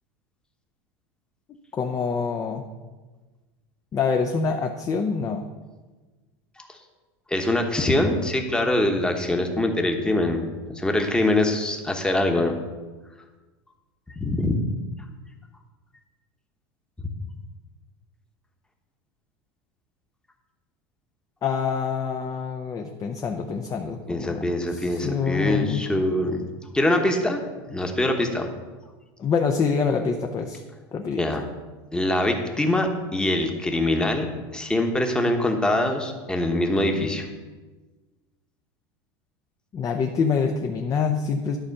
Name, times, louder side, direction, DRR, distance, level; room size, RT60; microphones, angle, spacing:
voice 1, 1.7-2.6 3.9-5.4 21.4-24.4 24.7-25.8 29.2-30.6 30.9-31.4 39.7-41.6, left 5 dB, 25° left, 4 dB, 0.7 m, -26 dB
voice 2, 7.3-12.5 14.2-14.6 24.1-26.4 26.7-28.5 31.2-31.5 31.9-34.3 34.5-37.3, left 1 dB, 5° left, 3 dB, 1.1 m, -23 dB
11.5 x 4.3 x 6.5 m, 1.3 s
supercardioid pair, 125°, 12 cm